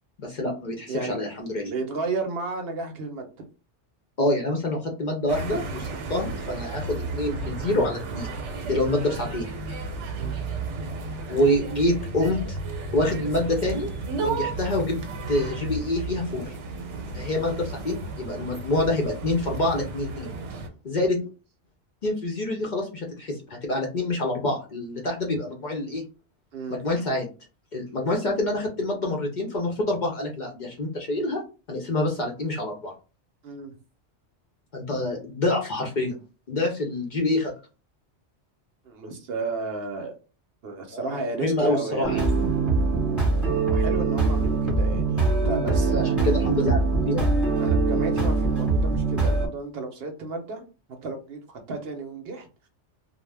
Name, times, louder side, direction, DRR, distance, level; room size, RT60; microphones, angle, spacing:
voice 1, 0.2-1.7 4.2-8.3 8.6-9.5 11.3-12.6 12.9-13.9 14.2-15.0 15.3-16.6 17.1-20.3 20.8-21.2 22.0-26.0 26.7-27.3 27.7-31.4 31.7-32.9 34.7-36.2 36.5-37.5 40.9-42.2 45.4-47.2, left 1 dB, 50° left, 1 dB, 0.6 m, -26 dB
voice 2, 0.9-3.3 10.2-10.4 26.5-26.8 33.4-33.7 38.9-40.1 40.6-42.1 43.7-46.2 47.6-50.6 51.0-52.5, right 3 dB, 60° right, 4 dB, 0.8 m, -33 dB
sound 1, 5.3-20.7, right 3 dB, 90° right, 1.0 m, -33 dB
sound 2, 42.0-49.5, right 3 dB, ahead, 1.0 m, -23 dB
2.4 x 2.1 x 3.2 m, 0.33 s
omnidirectional pair, 1.2 m